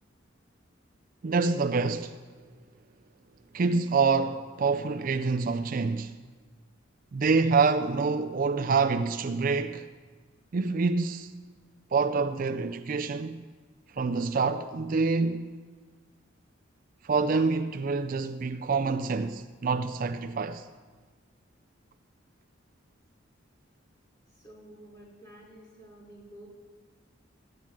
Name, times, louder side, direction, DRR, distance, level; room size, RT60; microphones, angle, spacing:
voice 1, 1.2-2.2 3.5-6.1 7.1-9.9 10.5-11.3 11.9-13.4 14.0-15.5 17.1-20.7, right 4 dB, 45° right, 0.4 m, -26 dB
voice 2, 24.3-26.5, right 1 dB, 20° left, 4.7 m, -50 dB
14.0 x 9.3 x 7.3 m
head